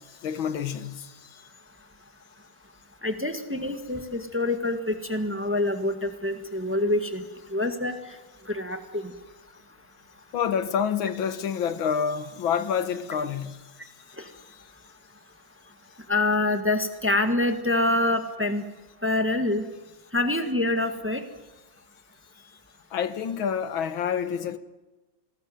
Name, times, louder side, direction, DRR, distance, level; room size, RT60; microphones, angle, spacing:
voice 1, 0.0-1.4 10.3-13.6 22.9-24.6, left 7 dB, 85° left, 2.0 m, -28 dB
voice 2, 3.0-8.1 8.4-9.1 14.2-14.3 16.1-18.7 19.0-19.7 20.1-21.2, left 2 dB, 5° right, 1.4 m, -26 dB
27.0 x 18.5 x 7.9 m
omnidirectional pair, 2.2 m